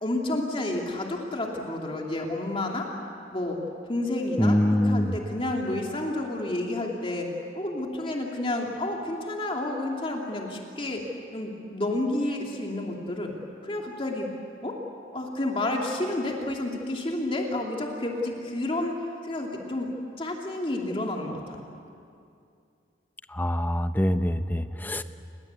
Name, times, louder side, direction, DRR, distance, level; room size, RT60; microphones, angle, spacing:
voice 1, 0.0-2.9 3.3-3.6 3.9-7.3 7.5-11.0 11.3-13.3 13.6-14.3 14.6-14.8 15.1-19.9 20.2-21.6, left 1 dB, 30° left, 0 dB, 2.7 m, -30 dB
voice 2, 4.4-5.1 23.3-25.0, left 1 dB, 10° left, 10 dB, 0.8 m, -24 dB
29.5 x 21.5 x 8.2 m, 2.5 s
head